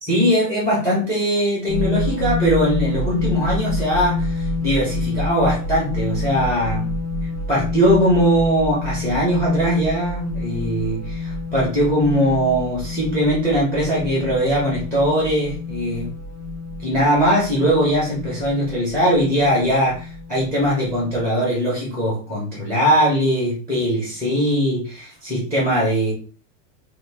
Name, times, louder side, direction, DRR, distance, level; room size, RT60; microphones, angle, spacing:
voice 1, 0.0-6.9 7.5-16.1 16.8-26.1, equal, 5° left, -5 dB, 0.8 m, -20 dB
sound 1, 1.7-21.2, left 2 dB, 35° left, 0.9 m, -28 dB
2.9 x 2.5 x 3.4 m, 0.39 s
supercardioid pair, 170°, 40 cm